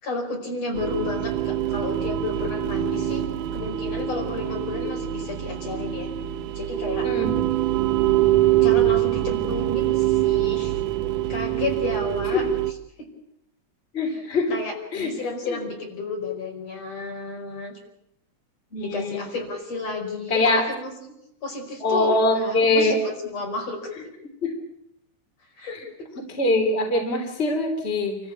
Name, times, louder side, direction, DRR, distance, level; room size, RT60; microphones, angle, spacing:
voice 1, 0.0-3.2 3.5-6.1 6.5-7.1 8.6-12.5 14.0-14.2 14.5-17.8 18.8-21.1 21.4-23.9 25.6-26.1, left 3 dB, 55° left, 2 dB, 6.2 m, -32 dB
sound 1, 0.7-12.7, right 13 dB, 85° right, 2.5 m, -24 dB
voice 2, 13.9-14.6 14.9-15.1 15.5-15.6 18.7-19.2 20.3-20.7 21.8-23.0 24.4-24.6 26.2-28.2, left 2 dB, 20° left, 3 dB, 3.6 m, -23 dB
28.5 x 14.5 x 8.7 m, 0.80 s
omnidirectional pair, 3.5 m